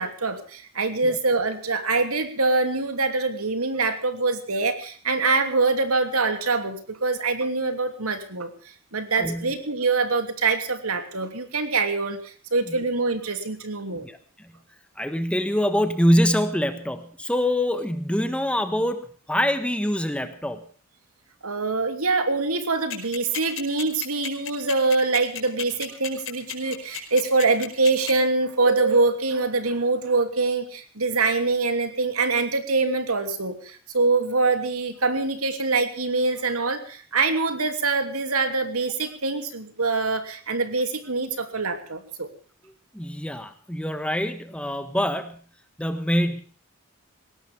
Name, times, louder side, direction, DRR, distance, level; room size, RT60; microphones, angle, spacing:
voice 1, 0.0-8.5 8.9-14.1 21.4-42.3, right 3 dB, 90° right, 8 dB, 2.9 m, -24 dB
voice 2, 9.2-9.5 12.7-12.8 13.9-14.5 15.0-20.6 42.9-45.4 45.8-46.4, equal, 5° left, 9 dB, 1.4 m, -25 dB
sound 1, 22.9-28.1, left 12 dB, 65° left, 5.1 m, -32 dB
20.0 x 17.5 x 3.6 m, 0.43 s
head